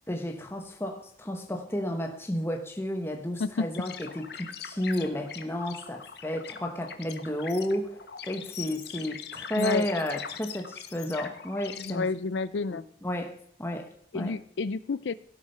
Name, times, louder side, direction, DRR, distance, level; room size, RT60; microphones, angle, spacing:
voice 1, 0.1-8.0 8.2-12.1 12.7-14.3, left 1 dB, 15° left, 3 dB, 1.1 m, -32 dB
sound 1, 3.7-11.9, left 7 dB, 65° left, 1.3 m, -41 dB
voice 2, 9.6-9.9 11.8-12.8 14.1-15.1, left 4 dB, 80° left, 14 dB, 0.5 m, -30 dB
17.0 x 8.7 x 5.7 m, 0.73 s
head